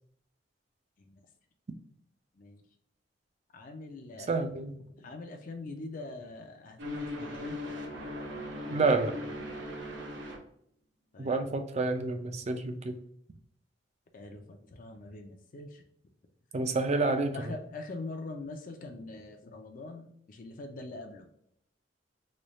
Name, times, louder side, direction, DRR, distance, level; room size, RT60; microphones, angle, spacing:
voice 1, 3.5-4.3 5.0-7.6 11.1-11.4 14.1-15.8 17.3-21.3, left 2 dB, 50° left, 4 dB, 0.5 m, -43 dB
voice 2, 4.3-4.8 8.7-9.2 11.2-13.0 16.5-17.5, right 3 dB, 35° right, 8 dB, 0.4 m, -29 dB
sound 1, 6.8-10.4, left 1 dB, 90° right, 0.9 m, -38 dB
3.2 x 2.3 x 4.0 m, 0.69 s
head